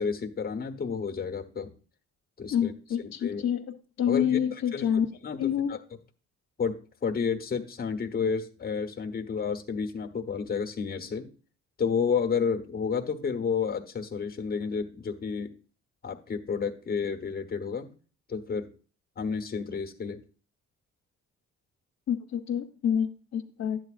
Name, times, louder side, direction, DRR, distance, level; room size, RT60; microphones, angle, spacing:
voice 1, 0.0-1.7 2.4-2.7 3.0-3.4 4.1-4.4 4.7-4.9 5.2-5.4 5.7-5.8 6.6-6.8 7.0-11.3 11.8-15.5 16.0-17.9 18.3-18.7 19.2-20.2, left 6 dB, 30° left, 5 dB, 1.1 m, -30 dB
voice 2, 2.5-5.1 5.4-5.7 22.1-23.8, left 9 dB, 60° left, 3 dB, 1.0 m, -28 dB
11.0 x 8.5 x 2.5 m, 0.38 s
cardioid pair, 90°, 30 cm